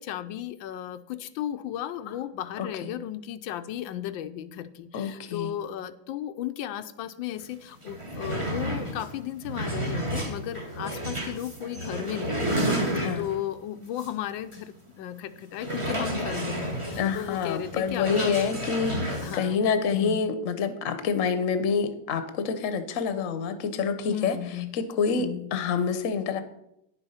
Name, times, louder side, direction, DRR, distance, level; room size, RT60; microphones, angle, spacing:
voice 1, 0.0-18.5 19.2-20.2 24.1-24.7 25.1-25.4, left 11 dB, 85° left, 10 dB, 1.4 m, -35 dB
voice 2, 2.6-2.9 4.9-5.5 13.0-13.3 17.0-24.4 24.7-26.4, left 6 dB, 50° left, 10 dB, 1.1 m, -27 dB
sound 1, 7.4-7.5 7.8-13.5 14.0-14.1 14.5-14.6 15.6-19.4, right 1 dB, 20° right, 1.2 m, -31 dB
10.0 x 6.9 x 5.6 m, 0.81 s
omnidirectional pair, 2.0 m